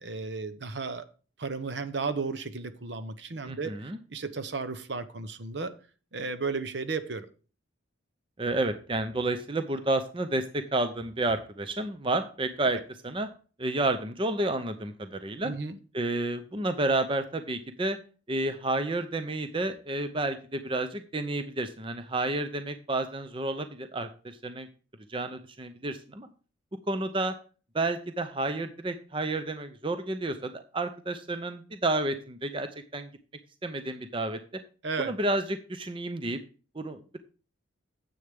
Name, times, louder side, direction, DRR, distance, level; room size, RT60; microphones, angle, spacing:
voice 1, 0.0-1.0 1.4-3.7 4.1-5.7 6.1-7.3 15.4-15.8 34.8-35.1, right 4 dB, 60° right, 11 dB, 0.9 m, -34 dB
voice 2, 3.4-4.0 8.4-13.3 13.6-15.5 15.9-18.0 18.3-24.7 25.1-26.3 26.9-27.3 27.7-33.1 33.6-34.4 35.0-36.4 36.8-37.2, right 2 dB, 25° right, 9 dB, 0.6 m, -30 dB
9.9 x 7.9 x 3.5 m, 0.36 s
head